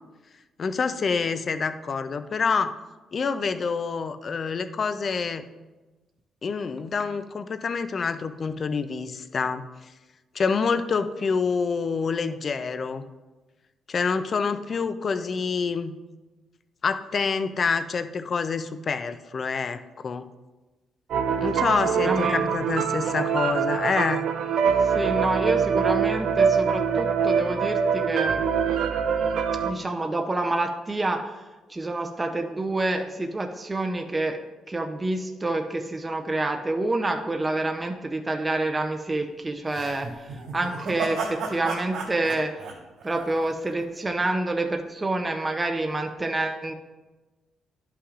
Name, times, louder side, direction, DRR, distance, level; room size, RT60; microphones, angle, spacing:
voice 1, 0.6-2.8 3.1-5.5 6.4-9.6 10.3-13.0 13.9-15.9 16.8-20.3 21.4-24.3, left 5 dB, 45° left, 11 dB, 0.4 m, -27 dB
sound 1, 21.1-29.7, right 6 dB, 65° right, 0.5 m, -24 dB
voice 2, 21.9-22.5 24.8-28.4 29.6-34.4 34.7-42.6 43.0-46.7, right 2 dB, 20° right, 4 dB, 0.6 m, -28 dB
sound 2, 39.7-43.8, right 4 dB, 85° right, 2.6 m, -33 dB
11.0 x 5.7 x 2.5 m, 1.2 s
cardioid pair, 90°, 0 cm